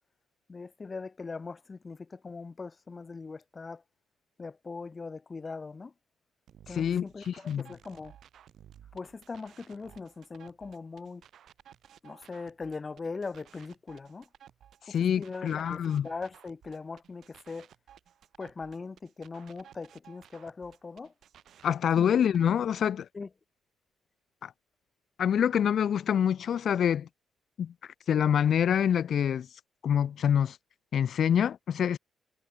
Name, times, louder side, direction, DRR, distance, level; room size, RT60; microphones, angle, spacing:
voice 1, 0.5-3.8 4.4-5.9 6.7-8.2 8.9-11.2 12.0-14.3 14.9-17.7 18.4-21.1 22.0-22.1 23.1-23.3, left 4 dB, 30° left, 6.0 m, -40 dB
sound 1, 6.5-22.5, right 10 dB, 65° right, 7.3 m, -56 dB
voice 2, 6.7-7.6 14.9-16.1 21.6-23.1 24.4-24.5 25.2-27.1 27.6-27.7 28.1-29.5 29.8-30.6 30.9-32.0, left 8 dB, 60° left, 1.3 m, -26 dB
cardioid pair, 90°, 0 cm